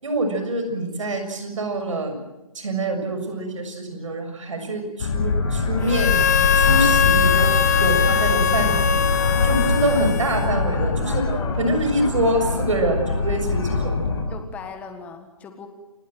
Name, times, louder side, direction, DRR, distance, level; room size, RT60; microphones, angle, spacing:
voice 1, 0.0-2.2 2.6-6.2 6.6-9.0 9.4-11.2 11.6-13.9, right 1 dB, 60° right, 6 dB, 6.8 m, -25 dB
sound 1, 5.0-14.2, left 4 dB, 45° left, 7.1 m, -23 dB
Harmonica, 5.9-10.7, left 9 dB, 30° left, 1.0 m, -21 dB
voice 2, 9.3-9.7 10.9-11.6 14.3-15.7, left 6 dB, 10° left, 7 dB, 1.6 m, -38 dB
29.0 x 17.0 x 7.7 m, 1.0 s
hypercardioid pair, 165°, 19 cm